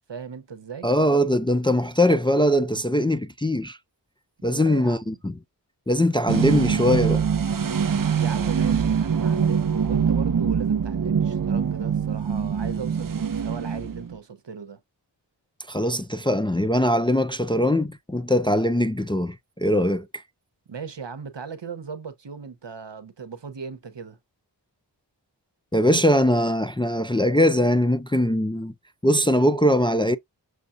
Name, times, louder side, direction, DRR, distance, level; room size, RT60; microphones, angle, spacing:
voice 1, 0.0-0.9 4.5-5.2 8.2-14.8 20.7-24.2, right 6 dB, 70° right, 0.9 m, -37 dB
voice 2, 0.8-3.8 4.4-5.4 5.9-7.3 15.7-20.1 25.7-28.7 29.0-30.2, left 1 dB, 10° left, 0.4 m, -21 dB
sound 1, 6.3-14.2, right 7 dB, 50° right, 0.6 m, -24 dB
6.4 x 2.4 x 2.5 m
wide cardioid pair, 40°, 44 cm